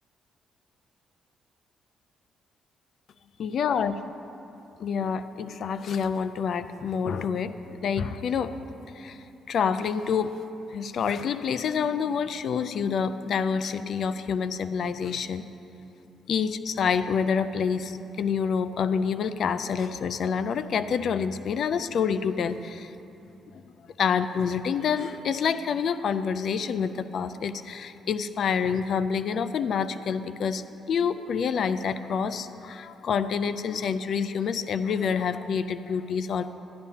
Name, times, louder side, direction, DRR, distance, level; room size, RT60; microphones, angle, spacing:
voice 1, 3.4-3.9 4.8-9.2 9.5-10.4 10.7-15.5 16.3-22.9 23.5-23.6 24.0-36.5, left 6 dB, 60° left, 12 dB, 0.4 m, -27 dB
12.0 x 11.0 x 2.8 m, 2.9 s
cardioid pair, 90°, 0 cm